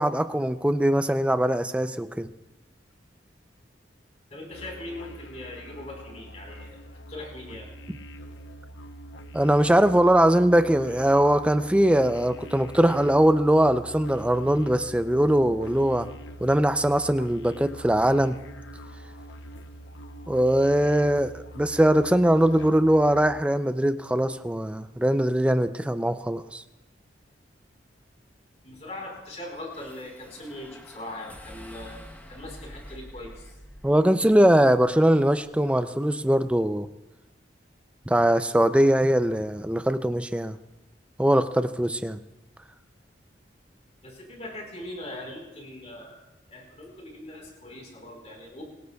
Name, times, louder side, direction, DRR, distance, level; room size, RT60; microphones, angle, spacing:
voice 1, 0.0-2.3 7.9-8.0 9.3-16.1 16.4-18.4 20.3-26.6 33.8-36.9 38.1-40.6 41.2-42.2, right 1 dB, 5° right, 10 dB, 0.4 m, -21 dB
voice 2, 4.3-6.8 7.1-7.7 28.6-33.5 44.0-48.6, left 1 dB, 40° left, 0 dB, 4.4 m, -40 dB
sound 1, 4.5-23.4, right 1 dB, 90° left, 0.8 m, -44 dB
sound 2, 29.7-36.1, equal, 10° left, 1.0 m, -48 dB
26.0 x 18.5 x 2.3 m, 1.0 s
head